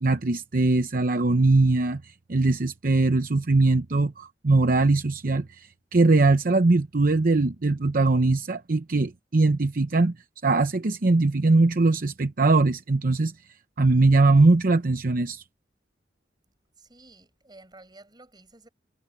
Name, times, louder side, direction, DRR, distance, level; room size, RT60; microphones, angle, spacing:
voice 1, 0.0-10.2 10.4-13.3 13.8-15.4, right 3 dB, 50° right, 0.8 m, -21 dB
voice 2, 16.8-18.7, right 2 dB, 25° right, 6.4 m, -52 dB
head